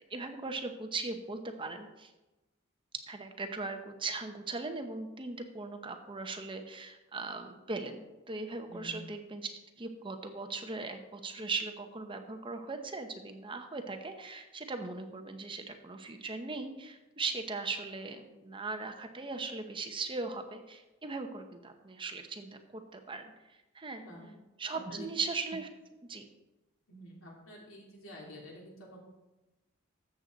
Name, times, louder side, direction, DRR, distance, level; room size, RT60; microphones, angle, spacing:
voice 1, 0.1-2.1 3.1-24.0 24.6-25.7 26.1-26.3, right 3 dB, 25° right, 6 dB, 0.9 m, -39 dB
voice 2, 23.9-24.3 24.7-25.1 26.9-29.0, equal, 80° left, -2 dB, 3.2 m, -49 dB
13.5 x 7.7 x 4.0 m, 1.0 s
head